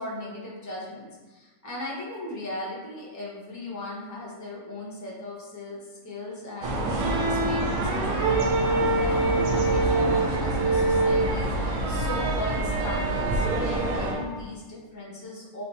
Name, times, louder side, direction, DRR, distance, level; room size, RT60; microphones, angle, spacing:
voice 1, 0.0-15.6, left 1 dB, 20° left, -6 dB, 0.4 m, -38 dB
sound 1, 6.6-14.1, right 1 dB, 90° right, 1.3 m, -27 dB
sound 2, 6.9-14.4, right 3 dB, 60° right, 1.1 m, -27 dB
3.9 x 2.5 x 4.0 m, 1.3 s
omnidirectional pair, 1.8 m